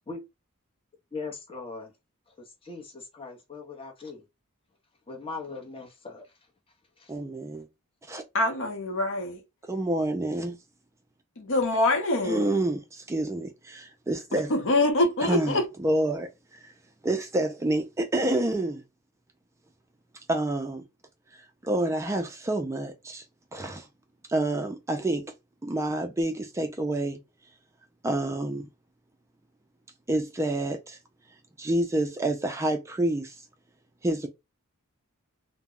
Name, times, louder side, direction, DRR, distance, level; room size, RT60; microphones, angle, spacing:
voice 1, 1.1-1.9 2.6-4.2 5.1-6.2 7.0-7.1, left 4 dB, 25° left, 0.7 m, -39 dB
voice 2, 7.1-7.7 8.1-8.2 9.7-10.6 12.2-14.5 15.3-16.7 17.0-18.8 20.3-20.8 21.3-23.2 23.5-23.9 24.3-25.3 25.6-27.2 28.0-28.7 30.1-31.0 31.6-33.4 34.0-34.3, right 1 dB, 15° right, 0.3 m, -28 dB
voice 3, 8.3-9.4 11.4-12.5 14.3-15.7, left 2 dB, 60° left, 0.7 m, -25 dB
2.2 x 2.0 x 3.6 m
head